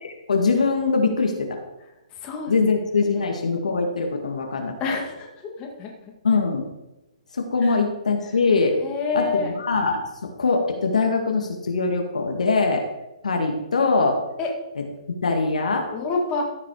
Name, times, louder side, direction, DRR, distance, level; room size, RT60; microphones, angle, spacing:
voice 1, 0.0-1.6 2.5-5.0 6.2-6.7 7.3-8.8 9.1-12.8 13.2-14.2 14.8-14.9 15.2-15.9, left 4 dB, 85° left, 3 dB, 1.9 m, -22 dB
voice 2, 2.2-2.7 3.1-3.4 4.8-5.3 5.6-5.9 7.6-7.8 8.8-9.5 14.4-14.5 15.9-16.4, left 4 dB, 25° left, 0 dB, 1.8 m, -27 dB
14.0 x 5.1 x 4.8 m, 0.97 s
hypercardioid pair, 150°, 4 cm